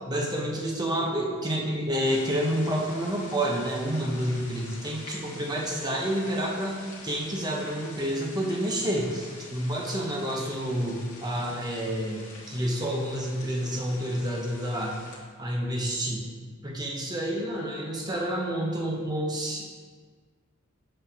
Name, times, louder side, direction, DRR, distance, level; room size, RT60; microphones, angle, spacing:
voice 1, 0.1-15.0 15.4-16.3 16.6-19.7, equal, 20° right, -2 dB, 0.9 m, -29 dB
sound 1, 2.0-15.1, left 2 dB, 35° left, 1.4 m, -46 dB
7.6 x 5.4 x 2.8 m, 1.5 s
head